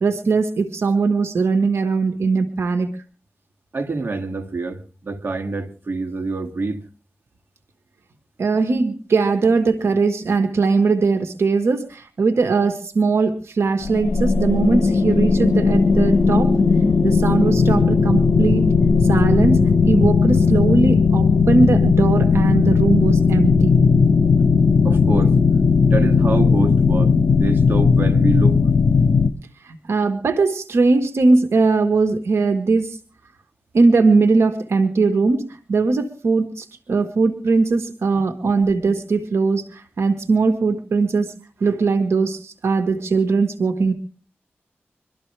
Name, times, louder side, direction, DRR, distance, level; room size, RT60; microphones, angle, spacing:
voice 1, 0.0-2.9 8.4-16.6 17.0-18.7 19.1-23.7 29.6-33.0 33.7-41.3 41.6-43.9, right 4 dB, 80° right, 1.5 m, -19 dB
voice 2, 3.7-6.8 24.8-25.3 25.8-28.6, right 3 dB, 55° right, 2.2 m, -26 dB
sound 1, 13.8-29.3, left 5 dB, 75° left, 1.1 m, -16 dB
24.0 x 13.5 x 3.4 m
cardioid pair, 65°, 4 cm